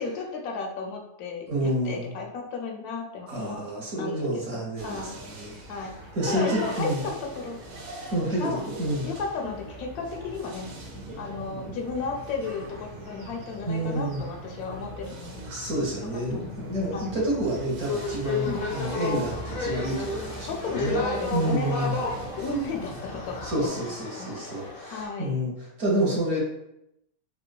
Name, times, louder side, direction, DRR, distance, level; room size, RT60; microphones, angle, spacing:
voice 1, 0.0-3.6 4.0-5.2 5.7-5.9 6.3-7.6 8.4-8.7 9.0-10.7 11.2-15.5 16.1-16.5 16.9-17.1 18.4-18.6 20.5-22.1 22.4-23.9 24.2-24.5 24.9-25.3, left 4 dB, 90° left, 2 dB, 1.1 m, -34 dB
voice 2, 1.5-2.1 3.3-7.0 8.1-9.1 13.7-14.2 15.5-21.0 21.3-22.1 23.4-26.4, right 1 dB, 60° right, -3 dB, 1.2 m, -29 dB
sound 1, 4.8-23.7, right 1 dB, 80° right, 1.2 m, -41 dB
sound 2, 17.8-25.1, left 3 dB, 65° left, 0.5 m, -33 dB
3.7 x 2.2 x 2.2 m, 0.83 s
omnidirectional pair, 1.5 m